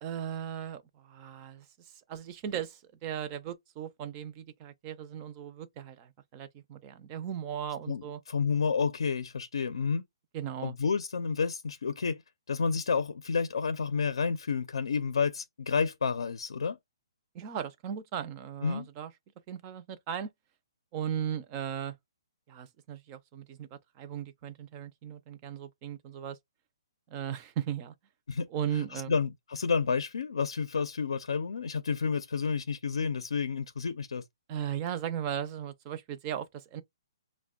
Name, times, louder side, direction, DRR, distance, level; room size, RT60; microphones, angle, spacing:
voice 1, 0.0-1.7 2.1-8.2 10.3-10.7 17.3-19.1 19.5-20.3 20.9-22.0 22.5-26.4 27.1-27.9 28.5-29.2 34.5-36.8, right 9 dB, 20° right, 0.4 m, -37 dB
voice 2, 7.9-10.0 10.6-12.2 12.5-16.8 18.6-18.9 28.3-28.5 28.8-34.2, left 5 dB, 85° left, 0.5 m, -30 dB
5.7 x 2.1 x 2.3 m
hypercardioid pair, 175°, 3 cm